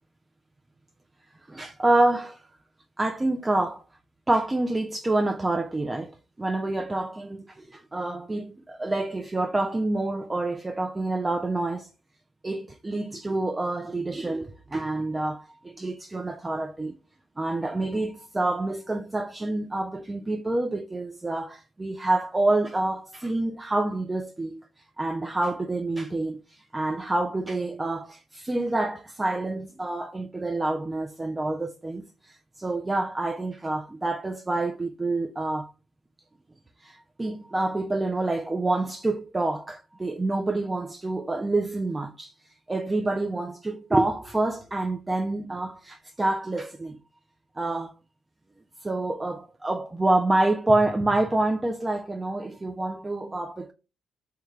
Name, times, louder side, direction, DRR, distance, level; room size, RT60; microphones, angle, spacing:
voice 1, 1.5-2.4 3.0-3.8 4.3-11.9 12.4-16.9 17.4-24.6 25.0-35.7 36.8-47.0 47.6-47.9 48.8-53.7, right 2 dB, 20° right, 0.3 m, -27 dB
3.1 x 2.2 x 3.5 m
cardioid pair, 80°, 0 cm